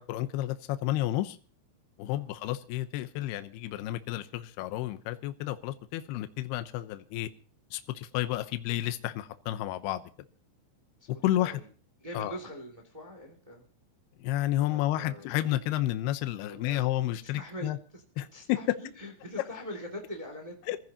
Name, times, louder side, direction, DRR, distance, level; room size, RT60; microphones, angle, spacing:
voice 1, 0.0-1.4 2.0-7.3 7.7-10.0 11.2-11.6 12.1-12.3 14.2-17.8 18.2-18.6 20.7-20.8, left 14 dB, 80° left, 2.4 m, -31 dB
voice 2, 12.0-13.6 14.6-15.4 16.5-16.9 17.3-18.0 18.3-20.5, equal, 50° right, 0.4 m, -43 dB
25.0 x 15.0 x 2.9 m
omnidirectional pair, 5.6 m